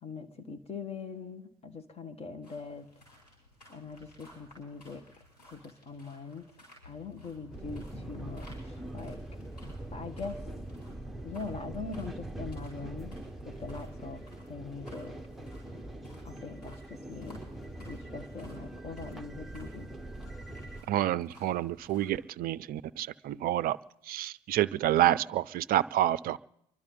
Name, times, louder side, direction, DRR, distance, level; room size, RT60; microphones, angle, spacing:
voice 1, 0.0-2.9 3.7-5.0 5.5-6.5 6.8-9.2 9.9-10.4 11.2-13.2 13.4-15.2 16.2-17.4 17.9-19.9, left 4 dB, 30° left, 7 dB, 1.5 m, -42 dB
sound 1, 2.4-22.2, left 1 dB, 80° left, 7.7 m, -58 dB
sound 2, 7.5-20.8, right 1 dB, ahead, 1.1 m, -43 dB
voice 2, 20.9-23.8 24.1-26.4, right 13 dB, 45° right, 16 dB, 0.5 m, -28 dB
29.5 x 12.0 x 4.0 m, 0.79 s
hypercardioid pair, 65°, 21 cm